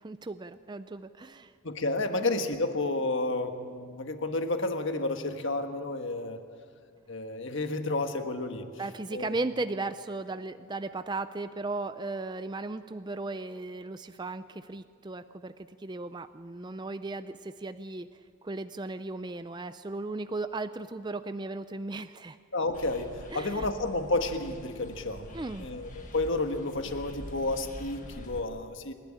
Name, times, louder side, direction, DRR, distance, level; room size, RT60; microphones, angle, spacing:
voice 1, 0.0-1.5 2.1-2.3 8.8-15.5 15.8-18.1 18.4-22.4 23.3-23.7 25.3-25.7, right 2 dB, 20° right, 11 dB, 0.4 m, -36 dB
voice 2, 1.6-6.4 7.1-8.6 9.1-9.3 22.5-28.9, left 2 dB, 55° left, 6 dB, 1.5 m, -31 dB
sound 1, 22.7-28.4, left 1 dB, 35° left, 1.8 m, -45 dB
27.5 x 12.0 x 8.9 m, 2.2 s
head